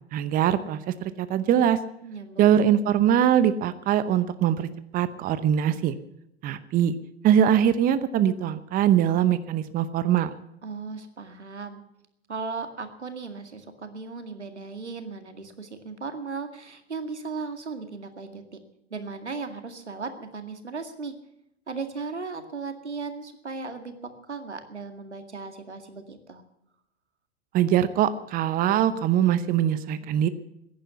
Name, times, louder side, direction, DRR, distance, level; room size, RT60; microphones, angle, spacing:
voice 1, 0.1-1.8 2.4-4.7 4.9-5.9 6.4-6.9 7.2-10.3 27.5-30.3, right 10 dB, 25° right, 13 dB, 0.8 m, -22 dB
voice 2, 2.0-2.6 10.6-11.8 12.3-18.6 18.9-21.1 21.7-26.4, right 4 dB, 90° right, 7 dB, 2.1 m, -36 dB
15.5 x 10.5 x 8.1 m, 0.80 s
figure-of-eight pair, 100°, 33 cm